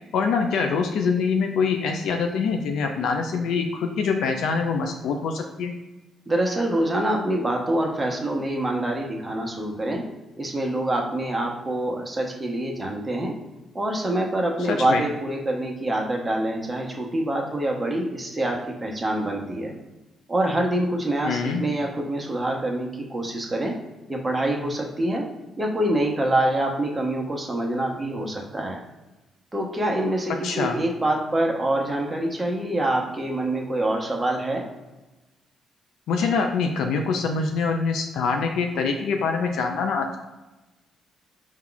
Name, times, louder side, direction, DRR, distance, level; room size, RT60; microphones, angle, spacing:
voice 1, 0.1-5.7 14.7-15.0 21.2-21.6 30.4-30.8 36.1-40.1, left 5 dB, 80° left, 4 dB, 0.4 m, -24 dB
voice 2, 6.3-10.0 10.4-13.3 13.7-19.7 20.3-23.7 24.1-25.3 25.6-28.8 29.5-34.6, right 1 dB, 15° right, 0 dB, 0.8 m, -25 dB
4.4 x 2.3 x 3.8 m, 1.1 s
cardioid pair, 90°, 0 cm